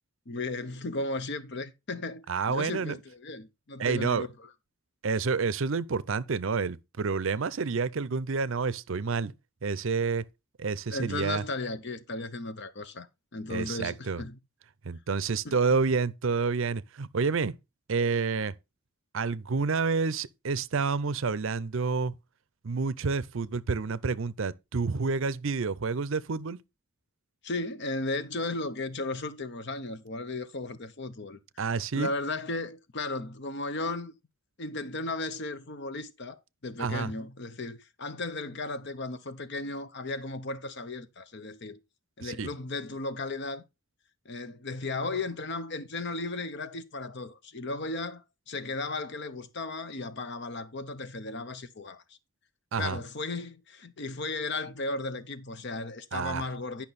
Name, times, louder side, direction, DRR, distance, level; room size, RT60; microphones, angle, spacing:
voice 1, 0.3-4.5 10.9-13.1 13.3-14.4 15.4-15.6 27.4-31.4 31.9-34.1 34.6-41.8 42.2-43.6 44.2-52.0 52.8-56.8, left 2 dB, 50° left, 0.8 m, -35 dB
voice 2, 2.3-3.0 3.8-4.3 5.0-9.3 9.6-10.2 10.6-11.4 13.5-14.2 14.8-17.5 17.9-18.5 19.1-22.2 22.6-26.6 31.6-32.1 36.8-37.1 42.2-42.5 52.7-53.0 56.1-56.5, right 4 dB, 60° right, 0.5 m, -29 dB
10.5 x 5.7 x 4.1 m
head